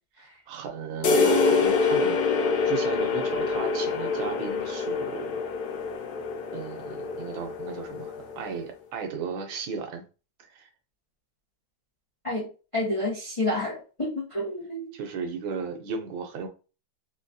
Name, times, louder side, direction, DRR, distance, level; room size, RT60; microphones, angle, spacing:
voice 1, 0.2-5.3 6.5-10.0 10.4-10.7 14.9-16.5, right 6 dB, 80° right, 1.5 m, -35 dB
sound 1, 1.0-8.6, left 4 dB, 70° left, 1.0 m, -26 dB
voice 2, 12.7-14.9, left 1 dB, 30° left, 0.6 m, -29 dB
3.9 x 2.3 x 2.6 m
omnidirectional pair, 2.2 m